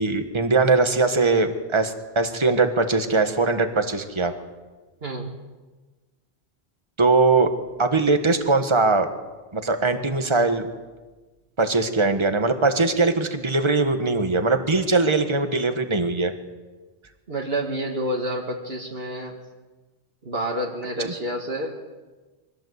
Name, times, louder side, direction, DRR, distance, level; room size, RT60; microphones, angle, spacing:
voice 1, 0.0-4.3 7.0-7.5 7.8-9.1 9.5-10.7 11.6-16.3 21.0-21.1, right 3 dB, 25° right, 8 dB, 1.5 m, -21 dB
voice 2, 5.0-5.3 17.3-19.3 20.2-21.8, right 1 dB, 60° right, 0 dB, 2.2 m, -29 dB
23.5 x 17.5 x 8.1 m, 1.3 s
omnidirectional pair, 1.1 m